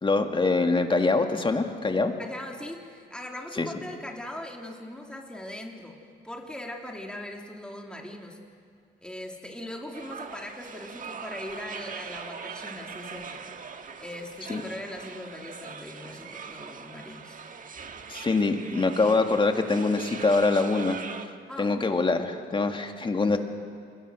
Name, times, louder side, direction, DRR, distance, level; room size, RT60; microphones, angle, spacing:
voice 1, 0.0-2.1 3.6-3.7 14.5-14.6 18.1-21.0 21.6-23.4, left 3 dB, 25° left, 5 dB, 2.1 m, -24 dB
voice 2, 2.2-6.0 6.2-8.4 9.0-13.4 14.0-17.4 21.5-22.0, left 1 dB, 5° left, 1 dB, 3.0 m, -40 dB
sound 1, 9.9-21.3, right 5 dB, 40° right, 1.6 m, -41 dB
28.0 x 21.5 x 6.3 m, 2.3 s
cardioid pair, 90°, 20 cm